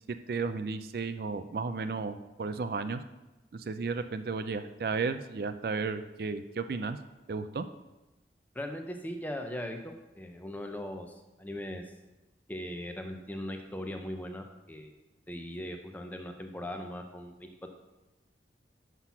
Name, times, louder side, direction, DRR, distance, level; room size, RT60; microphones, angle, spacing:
voice 1, 0.3-3.0 3.5-7.0 7.3-7.7, right 4 dB, 55° right, 10 dB, 0.4 m, -33 dB
voice 2, 8.5-11.8 12.5-15.0 15.3-17.7, left 1 dB, 10° left, 4 dB, 0.7 m, -39 dB
5.9 x 5.9 x 5.7 m, 1.1 s
head